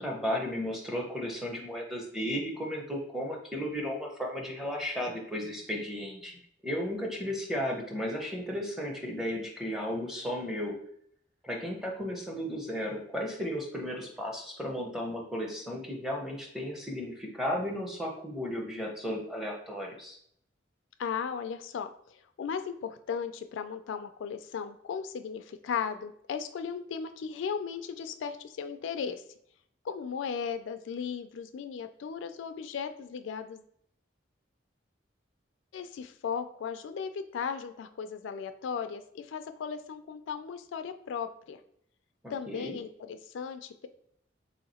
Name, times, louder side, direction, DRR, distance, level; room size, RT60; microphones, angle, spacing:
voice 1, 0.0-10.7 11.4-20.2 42.2-42.8, equal, ahead, -1 dB, 0.6 m, -34 dB
voice 2, 21.0-29.2 29.8-33.6 35.7-41.6 42.3-43.9, left 6 dB, 80° left, 9 dB, 0.3 m, -36 dB
2.9 x 2.8 x 4.2 m, 0.67 s
head